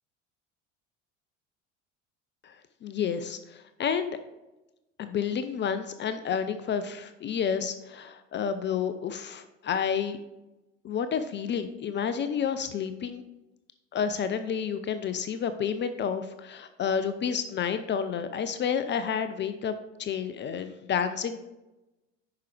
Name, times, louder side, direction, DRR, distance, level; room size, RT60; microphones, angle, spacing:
voice 1, 2.8-4.2 5.0-10.2 10.8-13.2 13.9-21.4, left 7 dB, 30° left, 10 dB, 0.5 m, -30 dB
9.2 x 5.9 x 3.3 m, 1.0 s
figure-of-eight pair, 65°, 36 cm